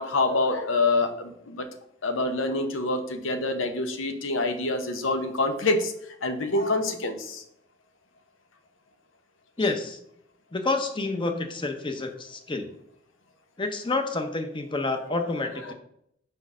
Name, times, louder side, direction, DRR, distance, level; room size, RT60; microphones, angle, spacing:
voice 1, 0.0-1.7 2.0-5.9 6.2-7.4 15.6-15.7, left 2 dB, 90° left, 7 dB, 0.9 m, -26 dB
voice 2, 9.6-10.0 10.5-12.7 13.6-15.7, left 3 dB, 25° left, 6 dB, 0.8 m, -28 dB
5.3 x 4.5 x 6.0 m, 0.74 s
head